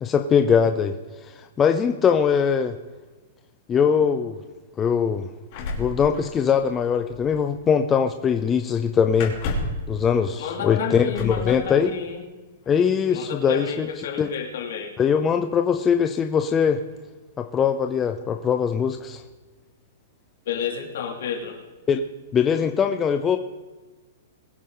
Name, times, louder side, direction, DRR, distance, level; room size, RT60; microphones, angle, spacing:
voice 1, 0.0-1.0 1.2-2.8 3.7-4.4 4.8-5.3 5.8-9.3 9.9-11.9 12.7-13.9 14.2-14.3 15.0-16.8 17.4-19.2 21.9-22.0 22.3-23.4, left 7 dB, 15° left, 7 dB, 0.4 m, -21 dB
sound 1, 5.5-6.8 7.1-7.3 9.1-9.9 11.1-11.5 12.6-12.8 13.2-13.6, left 2 dB, 35° left, 2.9 m, -31 dB
voice 2, 10.4-12.2 13.1-14.9 20.5-21.6, left 7 dB, 60° left, 2 dB, 2.7 m, -30 dB
22.0 x 9.8 x 3.8 m, 1.3 s
hypercardioid pair, 175°, 0 cm